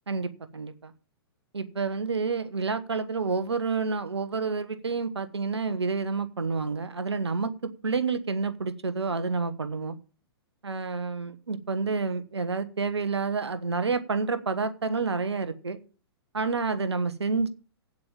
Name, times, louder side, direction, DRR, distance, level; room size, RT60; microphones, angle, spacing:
voice 1, 0.1-0.9 1.5-10.0 10.6-15.8 16.3-17.5, right 4 dB, 85° right, 11 dB, 1.3 m, -29 dB
8.9 x 7.5 x 7.5 m, 0.39 s
hypercardioid pair, 120°, 14 cm